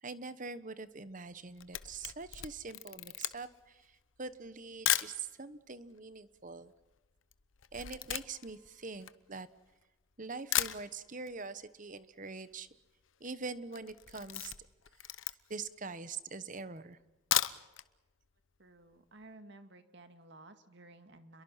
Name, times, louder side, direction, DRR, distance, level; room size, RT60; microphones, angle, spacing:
voice 1, 0.0-6.7 7.7-9.5 10.2-12.7 13.2-14.5 15.5-17.0, right 4 dB, 40° right, 14 dB, 1.1 m, -44 dB
Camera, 1.3-5.2 5.9-6.0 6.2-9.8 10.2-10.3 10.5-11.4 11.6-11.7 12.0-12.1 12.3-12.7 13.1-13.3 13.7-15.7 16.2-16.3 17.1-17.9 18.2-18.3 18.7-18.8, left 13 dB, 75° left, 1.0 m, -36 dB
voice 2, 18.6-21.4, right 2 dB, 60° right, 8 dB, 2.1 m, -55 dB
29.5 x 22.5 x 5.8 m, 1.1 s
head